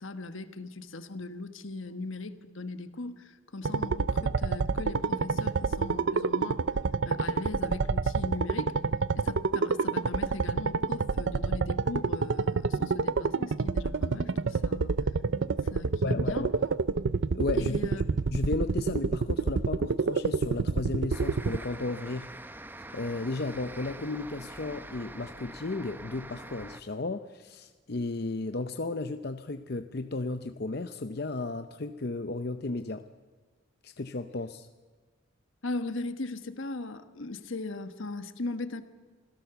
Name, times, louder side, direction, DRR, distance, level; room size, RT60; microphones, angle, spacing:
voice 1, 0.0-6.7 7.0-8.8 9.1-14.9 15.7-16.5 17.5-18.0 35.6-38.8, left 2 dB, 70° left, 1.4 m, -39 dB
sound 1, 3.6-21.6, right 4 dB, 60° right, 0.5 m, -28 dB
voice 2, 16.0-16.5 17.3-17.8 18.3-22.3 22.9-33.1 33.8-34.7, left 3 dB, 50° left, 0.7 m, -34 dB
sound 2, 21.1-26.8, right 1 dB, 10° right, 0.8 m, -45 dB
26.5 x 17.0 x 6.9 m
head